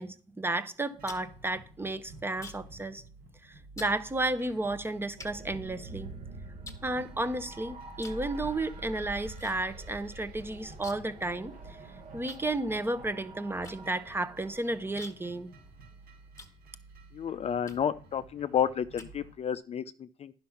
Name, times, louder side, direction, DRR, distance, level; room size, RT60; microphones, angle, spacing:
voice 1, 0.0-3.0 3.4-6.1 6.8-15.5, right 2 dB, 15° right, 0.8 m, -33 dB
sound 1, 0.7-2.8 3.1-3.4 3.8-4.0 4.6-4.7 5.2-6.2 6.6-7.5 8.0-8.3 8.6-9.6 9.8-9.9 10.2-11.2 11.5-11.6 12.3-17.0 17.6-18.0 18.5-19.6, left 3 dB, 20° left, 1.6 m, -50 dB
sound 2, 1.0-19.3, right 3 dB, 65° right, 4.0 m, -53 dB
sound 3, 5.2-15.6, right 2 dB, 50° right, 2.2 m, -46 dB
voice 2, 17.1-20.3, left 8 dB, 40° left, 0.4 m, -31 dB
10.5 x 5.7 x 5.7 m
cardioid pair, 110°, 17 cm